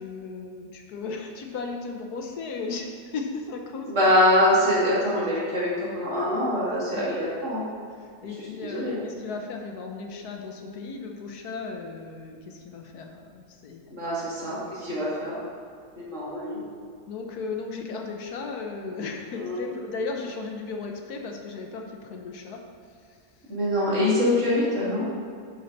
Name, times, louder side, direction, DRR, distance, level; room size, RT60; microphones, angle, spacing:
voice 1, 0.0-4.1 5.8-6.3 6.9-7.2 8.0-13.8 17.1-22.7 23.1-23.2, left 4 dB, 75° left, 2 dB, 1.4 m, -36 dB
voice 2, 3.8-7.6 8.6-9.0 13.9-15.4 16.0-16.6 19.4-19.6 23.5-25.1, left 1 dB, 50° right, -8 dB, 2.8 m, -24 dB
10.5 x 5.7 x 4.0 m, 2.3 s
omnidirectional pair, 1.7 m